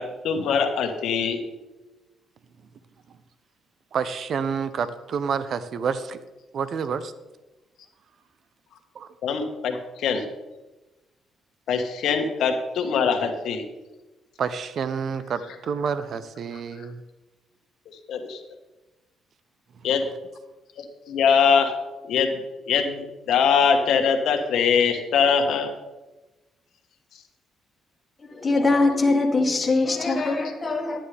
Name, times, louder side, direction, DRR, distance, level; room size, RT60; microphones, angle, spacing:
voice 1, 0.0-1.4 9.2-10.3 11.7-13.7 18.1-18.4 19.8-20.0 20.8-21.7 22.1-22.3 22.7-25.7, left 6 dB, 75° left, 4 dB, 1.4 m, -22 dB
voice 2, 3.9-6.2 6.5-7.1 9.0-9.1 14.4-15.4 15.7-16.9, right 6 dB, 60° right, 13 dB, 0.6 m, -28 dB
voice 3, 28.2-31.0, left 3 dB, 30° left, 2 dB, 1.8 m, -22 dB
11.5 x 10.0 x 3.4 m, 1.1 s
cardioid pair, 90°, 0 cm